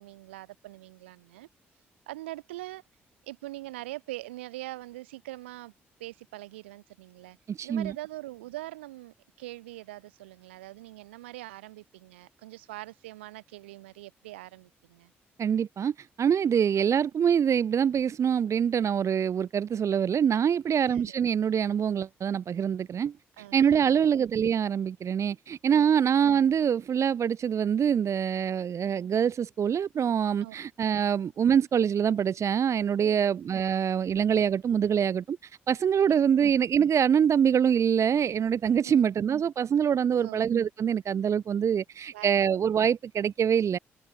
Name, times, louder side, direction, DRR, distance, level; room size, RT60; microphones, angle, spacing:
voice 1, 0.0-1.5 2.1-2.8 3.2-5.7 6.0-7.4 7.6-15.1 20.8-21.2 23.4-24.1 25.7-25.9 30.4-30.5 33.0-33.3 36.1-36.5 38.8-39.1 40.2-40.5 42.1-42.3, right 18 dB, 85° right, 6.6 m, -43 dB
voice 2, 7.5-7.9 15.4-23.1 23.5-35.4 35.7-43.8, right 8 dB, 55° right, 2.7 m, -25 dB
hypercardioid pair, 45°, 6 cm